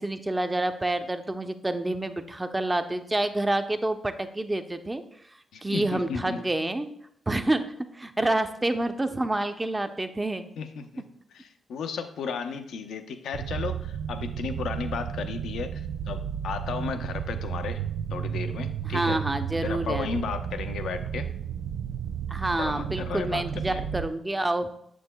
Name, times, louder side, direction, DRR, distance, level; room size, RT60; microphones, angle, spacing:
voice 1, 0.0-5.0 5.6-6.9 7.3-10.5 18.8-20.1 22.3-24.7, right 2 dB, 20° right, 8 dB, 0.6 m, -28 dB
voice 2, 5.5-6.4 8.2-8.3 10.6-11.0 11.3-17.8 18.1-19.2 19.6-21.3 22.5-23.8, left 5 dB, 75° left, 8 dB, 0.5 m, -34 dB
sound 1, 13.3-24.1, right 8 dB, 70° right, 0.3 m, -33 dB
6.8 x 6.2 x 2.2 m, 0.72 s
supercardioid pair, 50°, 0 cm